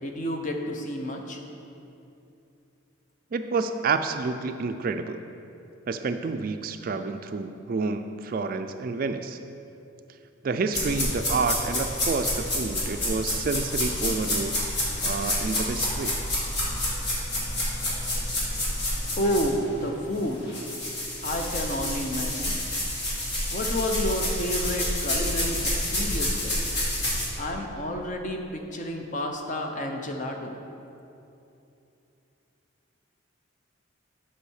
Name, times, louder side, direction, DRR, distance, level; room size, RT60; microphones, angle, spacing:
voice 1, 0.0-1.4 19.2-20.6 21.2-22.5 23.5-26.6 27.4-30.5, equal, 35° left, 3 dB, 0.8 m, -30 dB
voice 2, 3.3-5.2 5.9-9.4 10.4-14.6 15.0-16.2, right 4 dB, 45° right, 8 dB, 0.3 m, -29 dB
sound 1, 10.7-19.9 20.1-27.3, left 1 dB, 55° left, 2.2 m, -28 dB
8.3 x 5.6 x 6.3 m, 2.8 s
head